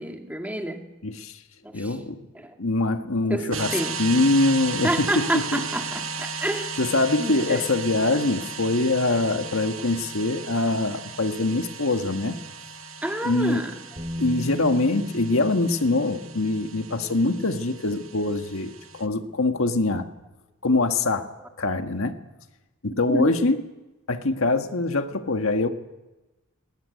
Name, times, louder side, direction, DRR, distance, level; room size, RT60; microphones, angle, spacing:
voice 1, 0.0-0.8 1.6-2.0 2.3-2.6 3.3-4.0 4.8-6.7 7.2-7.6 13.0-13.8 17.0-17.2 23.1-23.3, right 1 dB, 5° right, 3 dB, 2.1 m, -29 dB
voice 2, 1.0-1.3 1.7-2.2 2.6-3.7 4.0-5.6 6.8-12.4 13.2-13.6 14.2-20.1 20.6-21.3 21.6-22.1 22.8-23.6 24.1-25.7, left 2 dB, 75° left, 6 dB, 1.6 m, -23 dB
sound 1, 3.5-19.1, right 5 dB, 70° right, 1.4 m, -36 dB
Bass guitar, 14.0-20.2, left 1 dB, 25° right, 5.4 m, -39 dB
20.0 x 20.0 x 9.4 m, 1.1 s
head